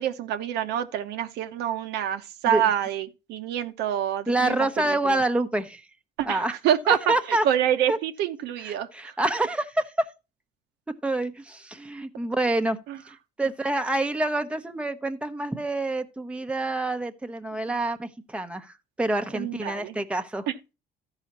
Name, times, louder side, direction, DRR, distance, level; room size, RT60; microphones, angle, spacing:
voice 1, 0.0-5.2 6.2-8.9 12.9-13.0 19.3-20.0, right 10 dB, 85° right, 0.9 m, -27 dB
voice 2, 4.3-5.8 6.2-6.5 7.1-7.4 7.9-8.0 8.6-9.9 11.0-12.8 13.1-20.5, right 2 dB, 5° right, 0.8 m, -27 dB
13.0 x 4.9 x 4.1 m
cardioid pair, 110°, 17 cm